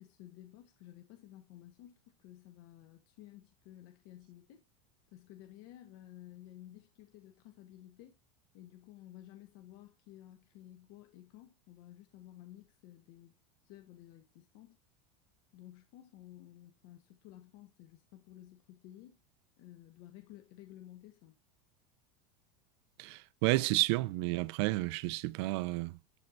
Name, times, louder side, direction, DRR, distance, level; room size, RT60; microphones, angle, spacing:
voice 1, 0.0-4.6 5.1-8.1 8.5-13.3 13.6-14.8 15.5-19.2 19.6-21.3, left 13 dB, 60° left, 1.3 m, -54 dB
voice 2, 23.0-26.0, right 20 dB, 60° right, 0.5 m, -31 dB
12.5 x 4.4 x 2.5 m
supercardioid pair, 150°, 16 cm